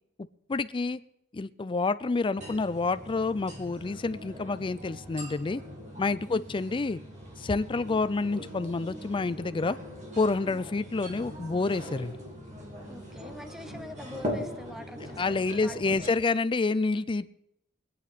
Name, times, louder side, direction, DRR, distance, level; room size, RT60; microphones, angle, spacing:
voice 1, 0.5-1.0 1.3-5.6 6.0-7.0 7.4-9.8 10.2-12.1 15.2-17.3, left 3 dB, 25° left, 14 dB, 0.4 m, -28 dB
sound 1, 2.4-16.1, equal, 35° right, 2.5 m, -41 dB
voice 2, 12.9-16.2, left 1 dB, ahead, 9 dB, 0.7 m, -45 dB
23.5 x 8.4 x 4.2 m, 0.80 s
head